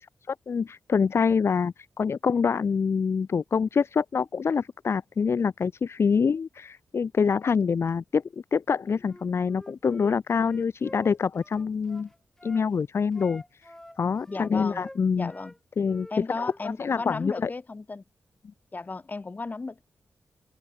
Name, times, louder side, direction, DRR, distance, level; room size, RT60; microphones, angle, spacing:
voice 1, 0.0-12.1 12.4-15.3 15.8-17.5, left 6 dB, 55° left, 0.7 m, -26 dB
Wind instrument woodwind instrument, 9.0-12.7 13.1-15.6 15.8-17.1, left 1 dB, 10° left, 4.0 m, -47 dB
voice 2, 14.3-14.8 15.2-15.5 16.1-18.0 18.7-19.8, left 3 dB, 35° left, 2.1 m, -35 dB
open air
wide cardioid pair, 90°, 5 cm